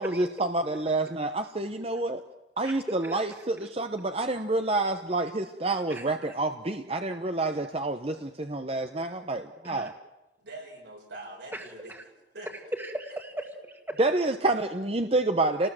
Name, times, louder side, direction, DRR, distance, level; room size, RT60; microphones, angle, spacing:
voice 1, 0.0-2.2 2.6-9.9 14.0-15.7, right 2 dB, 35° right, 7 dB, 1.1 m, -28 dB
voice 2, 2.6-3.2 5.9-6.0 9.6-9.9 11.5-12.0 12.7-14.0, right 1 dB, 10° right, 4 dB, 2.1 m, -37 dB
voice 3, 10.4-12.5, right 2 dB, 80° right, 0 dB, 7.1 m, -44 dB
29.5 x 19.5 x 7.8 m, 1.0 s
head